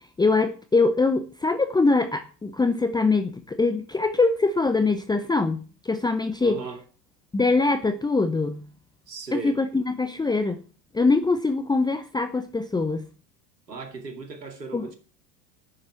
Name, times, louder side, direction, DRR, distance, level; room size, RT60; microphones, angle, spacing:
voice 1, 0.2-6.6 7.3-8.7 9.3-10.6 10.9-13.1 14.7-14.9, left 3 dB, 10° left, 0.9 m, -23 dB
voice 2, 6.4-6.8 9.1-9.6 13.7-15.0, right 4 dB, 85° right, 2.5 m, -36 dB
10.0 x 7.1 x 8.3 m
figure-of-eight pair, 80°, 48 cm